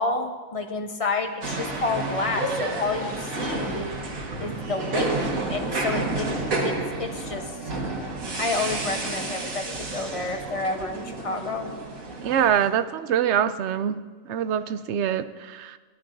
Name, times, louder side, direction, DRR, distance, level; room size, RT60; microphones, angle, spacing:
voice 1, 0.0-3.9 4.4-6.3 6.6-7.7 8.4-11.7, left 3 dB, 30° left, 5 dB, 0.8 m, -30 dB
sound 1, 1.4-12.7, right 2 dB, 85° right, 2.0 m, -30 dB
voice 2, 12.2-14.0 14.2-15.8, right 9 dB, 65° right, 12 dB, 0.8 m, -24 dB
18.5 x 11.0 x 2.6 m, 1.4 s
omnidirectional pair, 1.4 m